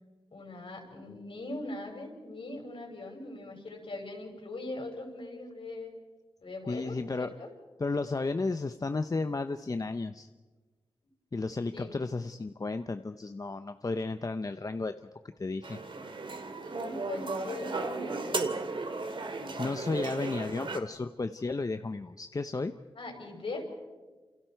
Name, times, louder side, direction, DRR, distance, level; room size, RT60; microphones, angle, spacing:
voice 1, 0.3-5.9 6.4-7.5 11.7-12.0 16.6-18.5 23.0-23.6, left 2 dB, 65° left, 2 dB, 5.8 m, -41 dB
voice 2, 6.7-7.3 7.8-10.3 11.3-14.9 15.4-15.8 19.6-22.7, left 3 dB, 35° left, 9 dB, 0.7 m, -33 dB
sound 1, 15.6-20.8, right 3 dB, 55° right, 2.2 m, -35 dB
29.0 x 28.5 x 4.6 m, 1.3 s
wide cardioid pair, 75°, 10 cm